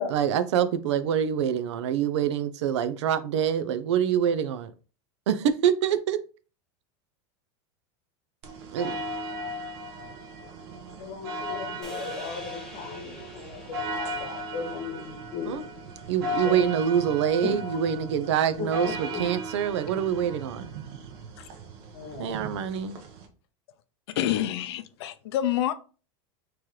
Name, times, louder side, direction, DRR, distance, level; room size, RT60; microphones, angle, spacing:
voice 1, 0.0-4.7 5.3-6.2 8.7-9.0 15.4-15.7 16.1-20.7 22.2-23.0, right 9 dB, 90° right, 0.5 m, -25 dB
sound 1, 8.4-23.3, equal, 60° right, 0.8 m, -37 dB
voice 2, 11.0-15.6 16.4-16.6 17.4-17.5 18.6-19.3 21.9-22.5, left 5 dB, 45° left, 1.0 m, -36 dB
sound 2, 11.8-16.2, equal, 5° left, 0.6 m, -47 dB
voice 3, 24.1-25.7, left 11 dB, 65° left, 0.4 m, -27 dB
3.1 x 3.0 x 3.6 m
supercardioid pair, 165°, 14 cm